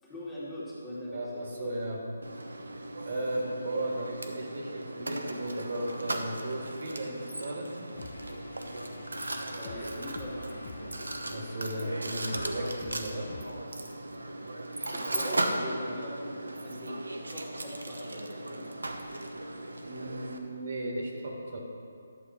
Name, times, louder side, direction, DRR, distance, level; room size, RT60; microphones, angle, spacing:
voice 1, 0.0-2.0 9.6-11.0 14.9-17.0 17.3-18.8, left 1 dB, 10° left, -9 dB, 2.3 m, -41 dB
voice 2, 1.1-2.0 3.0-7.7 11.3-13.4 19.9-21.6, right 1 dB, 55° right, 0 dB, 1.7 m, -35 dB
Mechanisms, 2.2-20.4, right 1 dB, 90° right, 0.9 m, -37 dB
sound 1, 7.9-13.4, left 3 dB, 50° left, 0.8 m, -46 dB
11.0 x 7.1 x 4.5 m, 2.4 s
figure-of-eight pair, 155°, 0 cm